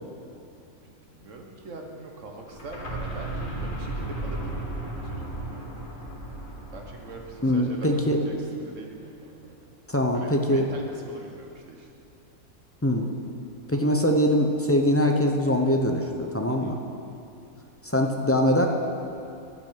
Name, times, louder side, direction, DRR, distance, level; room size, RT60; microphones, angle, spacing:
voice 1, 0.8-5.7 6.7-9.6 10.1-11.9 16.5-16.7, right 2 dB, 55° right, 1 dB, 1.7 m, -43 dB
sound 1, 2.4-8.2, right 2 dB, 35° left, 1.8 m, -35 dB
voice 2, 7.4-8.2 9.9-10.7 12.8-13.1 13.7-16.8 17.8-18.7, equal, 15° left, 2 dB, 0.5 m, -22 dB
12.5 x 6.0 x 9.1 m, 2.8 s
omnidirectional pair, 1.6 m